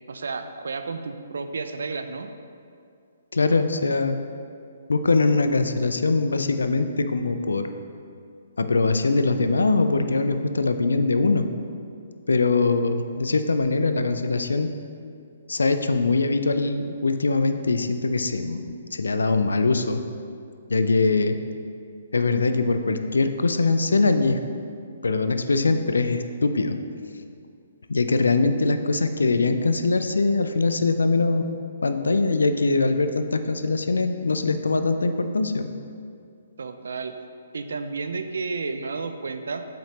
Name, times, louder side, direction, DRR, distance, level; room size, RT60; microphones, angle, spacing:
voice 1, 0.1-2.3 12.3-12.6 36.6-37.2 37.5-39.6, right 4 dB, 75° right, 8 dB, 0.5 m, -32 dB
voice 2, 3.3-4.2 4.9-7.7 8.6-11.5 12.3-14.7 15.5-20.0 20.7-21.4 22.1-24.4 25.0-26.8 27.9-31.4 31.8-35.7, left 3 dB, 85° left, 9 dB, 0.4 m, -22 dB
7.6 x 5.2 x 2.9 m, 2.4 s
hypercardioid pair, 140°, 0 cm